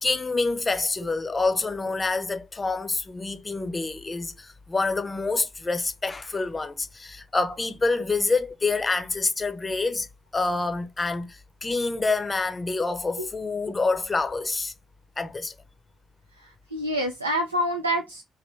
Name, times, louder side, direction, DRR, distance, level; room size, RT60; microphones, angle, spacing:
voice 1, 0.0-10.1 10.3-14.7 15.2-15.5, left 3 dB, 25° left, 0.6 m, -27 dB
voice 2, 16.4-18.2, equal, 85° right, 0.3 m, -27 dB
3.1 x 2.5 x 3.3 m
figure-of-eight pair, 45°, 0 cm